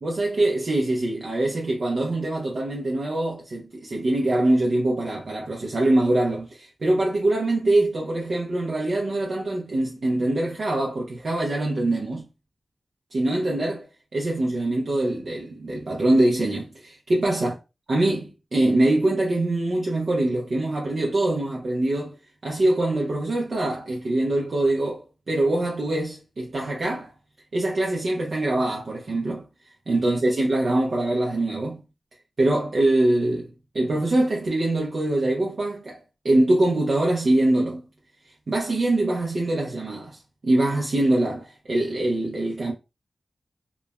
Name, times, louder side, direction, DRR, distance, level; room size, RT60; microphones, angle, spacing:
voice 1, 0.0-12.3 13.1-13.9 14.1-17.5 17.9-22.1 22.4-27.1 27.5-29.4 29.9-31.8 32.4-33.5 33.7-37.8 38.5-42.7, right 1 dB, 55° right, 0.5 m, -23 dB
3.0 x 2.1 x 2.3 m
wide cardioid pair, 135°, 0 cm